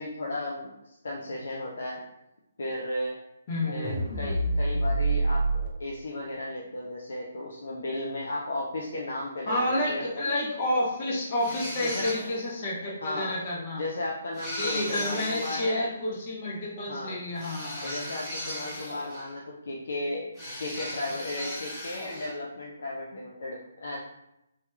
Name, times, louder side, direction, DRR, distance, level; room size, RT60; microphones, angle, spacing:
voice 1, 0.0-2.0 2.6-3.2 3.7-10.0 11.8-12.1 13.0-13.4 13.7-15.9 16.9-17.2 17.8-20.3 20.6-24.0, left 2 dB, 65° left, -3 dB, 0.5 m, -35 dB
voice 2, 3.5-4.0 9.5-13.8 14.6-17.9, left 1 dB, 40° left, -5 dB, 1.0 m, -30 dB
sound 1, 3.8-5.7, right 2 dB, 40° right, 0.7 m, -26 dB
sound 2, 11.4-12.5 14.3-15.7 17.3-19.4 20.4-22.4, equal, 10° left, 1.3 m, -37 dB
3.2 x 2.8 x 2.3 m, 0.85 s
figure-of-eight pair, 140°, 0 cm